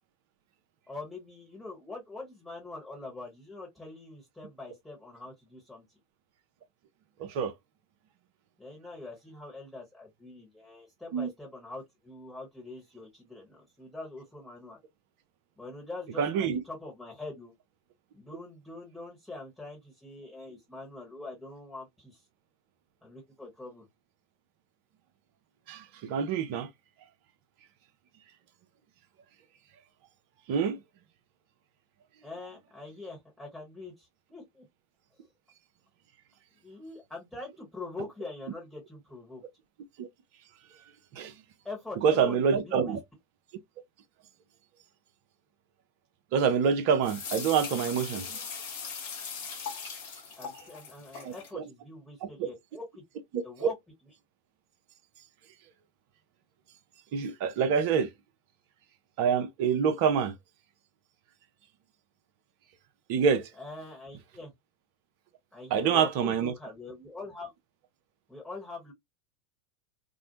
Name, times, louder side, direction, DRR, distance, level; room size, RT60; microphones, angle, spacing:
voice 1, 0.9-5.8 8.6-14.8 15.6-17.5 18.1-22.2 23.0-23.9 32.2-34.6 35.1-35.2 36.6-39.4 41.6-43.0 50.4-53.0 53.4-53.7 63.6-64.5 65.5-67.5 68.3-68.9, left 3 dB, 5° left, 1.1 m, -44 dB
voice 2, 7.2-7.5 11.1-11.3 16.2-16.6 25.7-26.7 30.5-30.8 40.0-40.1 41.1-41.3 42.0-43.0 46.3-48.5 51.2-51.7 52.4-52.5 53.3-53.7 57.1-58.1 59.2-60.3 63.1-63.5 65.7-66.5, right 6 dB, 55° right, 0.5 m, -26 dB
sound 1, 47.0-51.5, left 6 dB, 60° left, 0.9 m, -39 dB
2.4 x 2.1 x 2.8 m
figure-of-eight pair, 85°, 0 cm